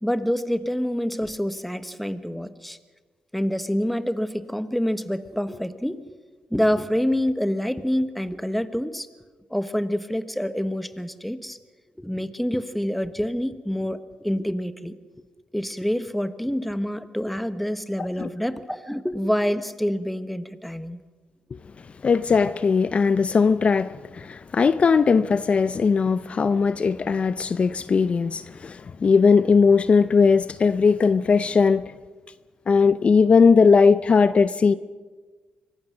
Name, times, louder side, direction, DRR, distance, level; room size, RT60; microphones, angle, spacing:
voice 1, 0.0-2.8 3.3-6.0 6.5-9.1 9.5-11.6 12.0-15.2 15.5-21.0, equal, 5° left, 1.2 m, -27 dB
voice 2, 22.0-31.8 32.7-34.7, left 5 dB, 45° left, 0.6 m, -19 dB
24.5 x 18.0 x 6.2 m
cardioid pair, 75°, 3 cm